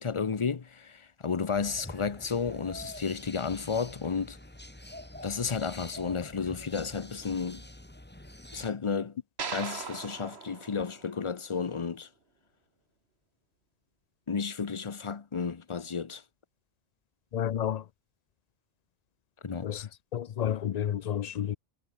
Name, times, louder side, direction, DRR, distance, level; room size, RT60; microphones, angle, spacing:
voice 1, 0.0-4.4 5.2-7.6 8.5-9.2 9.5-12.1 14.3-16.2 19.4-19.9, left 5 dB, 30° left, 0.7 m, -32 dB
sound 1, 1.5-8.7, left 1 dB, 10° left, 1.6 m, -46 dB
sound 2, 9.4-11.7, right 5 dB, 55° right, 1.7 m, -40 dB
voice 2, 17.3-17.8 19.6-21.6, left 9 dB, 85° left, 0.3 m, -31 dB
omnidirectional pair, 1.3 m